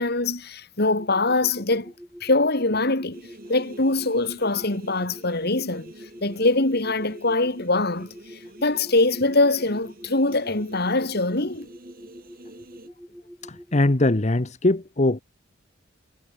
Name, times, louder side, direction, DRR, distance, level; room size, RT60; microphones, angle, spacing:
voice 1, 0.0-1.9 2.2-3.2 3.5-5.9 6.2-8.1 8.6-11.7, left 2 dB, 55° left, 3.0 m, -23 dB
sound 1, 1.0-13.9, equal, ahead, 3.6 m, -45 dB
sound 2, 3.1-12.9, right 1 dB, 50° right, 6.2 m, -48 dB
voice 2, 13.4-15.2, left 2 dB, 35° left, 1.1 m, -21 dB
head